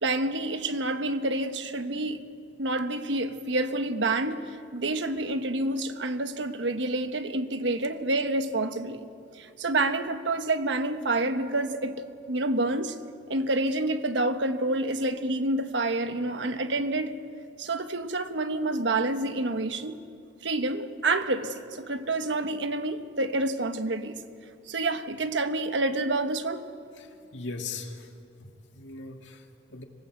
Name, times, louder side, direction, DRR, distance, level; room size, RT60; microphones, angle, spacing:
voice 1, 0.0-2.2 2.6-4.4 4.7-9.1 9.4-12.0 12.3-12.9 13.3-17.1 17.6-20.0 20.4-24.2 24.7-26.6, right 2 dB, 75° right, 1.2 m, -28 dB
voice 2, 27.0-28.1 28.4-29.8, left 4 dB, 75° left, 2.1 m, -40 dB
26.0 x 19.0 x 8.1 m
head